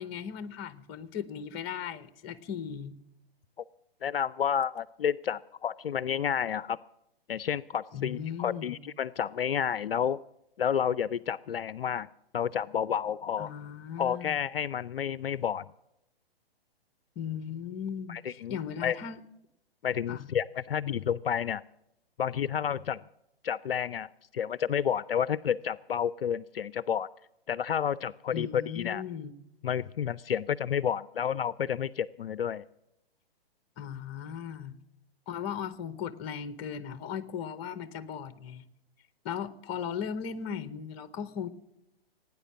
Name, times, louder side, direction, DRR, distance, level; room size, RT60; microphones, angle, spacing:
voice 1, 0.0-3.0 7.9-8.8 13.4-14.4 17.2-19.2 20.1-20.3 28.3-29.3 33.8-34.8 35.3-38.6 39.2-41.5, left 8 dB, 25° left, 15 dB, 0.8 m, -37 dB
voice 2, 4.0-6.8 7.3-10.2 10.6-12.1 12.3-13.5 14.0-15.7 18.1-19.0 19.8-21.6 22.2-23.0 23.4-27.1 27.5-29.0 29.6-32.7, left 8 dB, 70° left, 20 dB, 0.5 m, -30 dB
17.5 x 9.5 x 7.2 m, 0.84 s
figure-of-eight pair, 120°, 30 cm